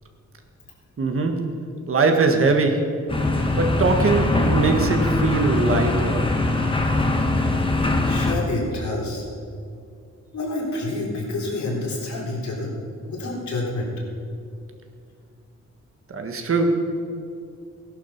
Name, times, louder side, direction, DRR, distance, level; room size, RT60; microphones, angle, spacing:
voice 1, 1.0-3.1 3.6-6.3 16.1-16.9, right 3 dB, 50° right, 4 dB, 1.6 m, -21 dB
sound 1, 3.1-8.3, left 2 dB, 20° left, 1.5 m, -22 dB
voice 2, 8.0-9.3 10.3-12.7 13.0-13.9, left 2 dB, 75° left, -3 dB, 4.1 m, -28 dB
17.5 x 11.5 x 5.9 m, 2.5 s
wide cardioid pair, 175°, 29 cm